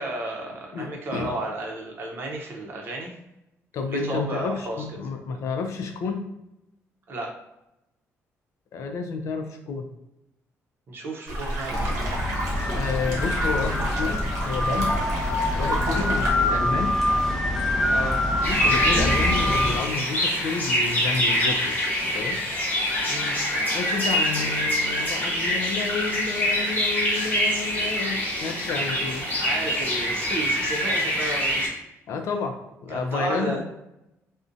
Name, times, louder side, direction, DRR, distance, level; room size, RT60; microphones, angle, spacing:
voice 1, 0.0-3.1 3.9-4.8 7.1-7.3 10.9-12.2 15.9-16.1 17.9-18.2 23.1-23.3 29.2-31.7 32.9-33.6, right 2 dB, 45° right, 0 dB, 0.6 m, -32 dB
voice 2, 0.7-1.3 3.7-6.3 8.7-9.9 12.7-15.0 15.6-17.0 18.5-21.9 22.1-22.4 23.7-29.2 32.1-33.6, left 5 dB, 70° left, 5 dB, 0.4 m, -30 dB
sound 1, 11.3-16.3, right 1 dB, 85° right, 0.7 m, -30 dB
sound 2, 11.7-19.8, left 1 dB, ahead, 0.5 m, -25 dB
sound 3, 18.4-31.7, equal, 35° left, 1.1 m, -25 dB
2.5 x 2.1 x 2.5 m, 0.88 s
cardioid pair, 125°, 5 cm